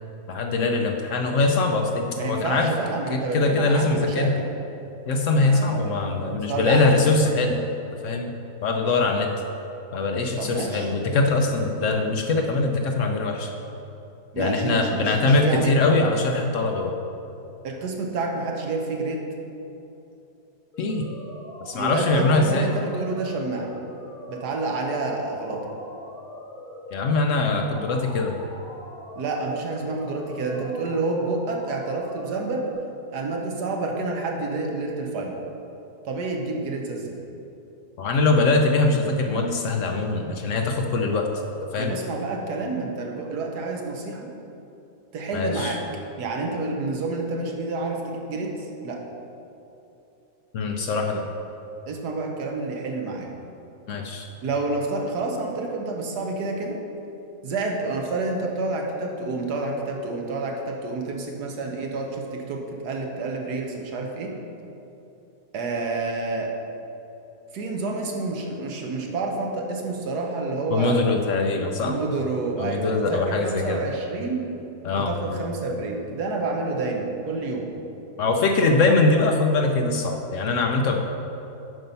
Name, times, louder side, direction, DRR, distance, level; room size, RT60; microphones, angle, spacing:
voice 1, 0.3-2.7 3.1-4.3 5.1-7.6 8.0-8.3 8.6-9.3 9.9-13.5 14.4-16.9 20.8-21.1 21.6-22.7 26.9-28.4 38.0-41.3 41.7-42.0 45.3-45.8 50.5-51.2 53.9-54.3 70.7-72.0 72.6-73.8 74.8-75.4 78.2-81.0, left 3 dB, 60° left, 3 dB, 0.9 m, -22 dB
voice 2, 2.2-4.5 5.3-5.9 6.5-7.0 10.4-10.9 14.3-15.7 17.6-19.3 21.8-23.7 24.3-25.7 29.2-32.7 33.1-35.4 36.0-37.2 41.8-44.3 45.1-45.8 46.2-49.0 51.9-53.3 54.4-56.8 57.4-64.3 65.5-66.5 67.5-71.0 71.8-74.5 74.9-77.7, right 3 dB, 85° right, 1 dB, 1.6 m, -29 dB
sound 1, 20.7-32.7, left 1 dB, 35° left, 1.1 m, -42 dB
9.3 x 5.6 x 5.5 m, 2.9 s
omnidirectional pair, 1.7 m